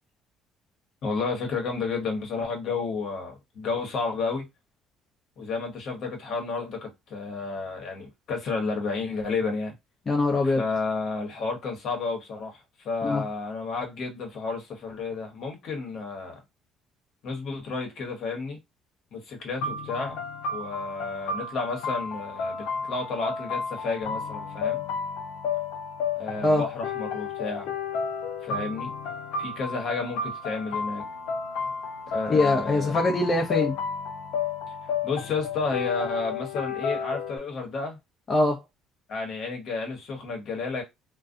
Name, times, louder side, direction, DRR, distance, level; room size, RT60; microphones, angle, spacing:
voice 1, 1.0-4.4 5.4-9.7 10.4-16.4 17.2-18.6 19.1-20.2 20.5-24.8 26.2-27.7 28.4-28.9 29.4-31.1 32.1-33.0 35.0-38.0 39.1-40.8, left 4 dB, 60° left, 1.0 m, -31 dB
voice 2, 10.1-10.6 13.0-13.2 26.4-26.6 32.3-33.8 38.3-38.6, left 2 dB, 35° left, 0.6 m, -23 dB
sound 1, 19.6-37.4, left 5 dB, 80° left, 0.6 m, -32 dB
2.4 x 2.2 x 2.5 m
supercardioid pair, 90°, 0 cm